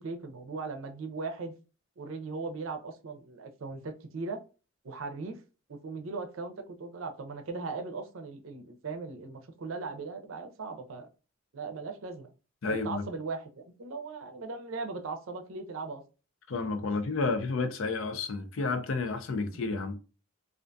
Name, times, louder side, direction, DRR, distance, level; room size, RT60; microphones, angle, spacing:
voice 1, 0.0-1.5 2.0-4.4 4.8-5.4 5.7-11.1 11.5-12.3 12.7-16.0 19.5-19.7, right 4 dB, 75° right, 0.5 m, -38 dB
voice 2, 12.6-13.0 16.5-20.0, left 3 dB, 70° left, 0.5 m, -31 dB
2.4 x 2.2 x 2.5 m
head